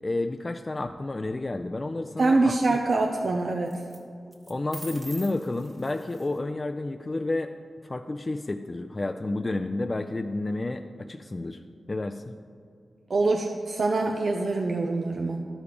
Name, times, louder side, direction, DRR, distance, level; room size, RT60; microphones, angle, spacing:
voice 1, 0.0-2.5 4.5-7.5 7.8-11.6 11.9-12.3, left 2 dB, 35° left, 7 dB, 0.3 m, -30 dB
sound 1, 0.9-1.3 3.7-4.0 4.3-6.4, right 1 dB, 20° right, 1.3 m, -45 dB
voice 2, 2.2-3.8 13.1-15.4, right 3 dB, 65° right, 2 dB, 0.5 m, -24 dB
12.0 x 5.0 x 5.0 m, 2.4 s
cardioid pair, 55°, 0 cm